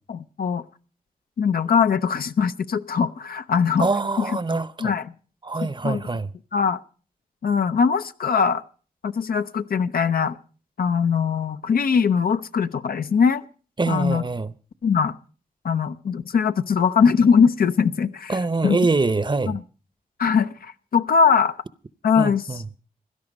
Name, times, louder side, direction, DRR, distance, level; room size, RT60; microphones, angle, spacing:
voice 1, 0.1-0.6 1.4-3.9 4.2-4.3 4.8-5.1 5.8-6.0 6.5-6.8 7.4-8.6 9.0-10.4 10.8-13.4 13.9-14.2 14.8-15.2 15.6-18.3 18.6-18.8 19.5-19.6 20.2-21.6 22.0-22.4, left 6 dB, 80° left, 0.7 m, -21 dB
voice 2, 3.8-4.9 5.4-6.3 13.8-14.5 18.3-19.6 22.2-22.6, right 3 dB, 30° right, 0.7 m, -24 dB
16.5 x 12.5 x 5.3 m
cardioid pair, 55°, 15 cm